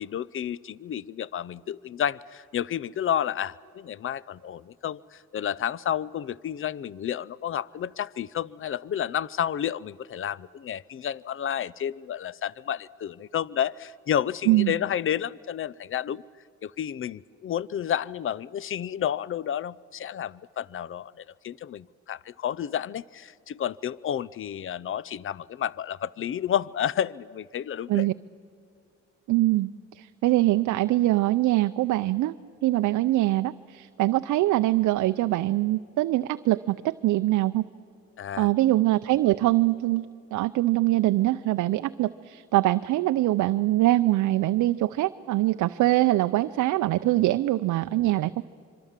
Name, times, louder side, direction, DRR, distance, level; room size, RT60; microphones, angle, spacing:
voice 1, 0.0-16.2 16.6-28.1 38.2-38.5, left 9 dB, 45° left, 22 dB, 0.5 m, -31 dB
voice 2, 29.3-29.7 29.9-32.3 32.6-37.6 38.4-40.1 40.3-48.4, right 16 dB, 75° right, 11 dB, 0.5 m, -23 dB
25.5 x 23.5 x 7.4 m, 2.3 s
cardioid pair, 90°, 30 cm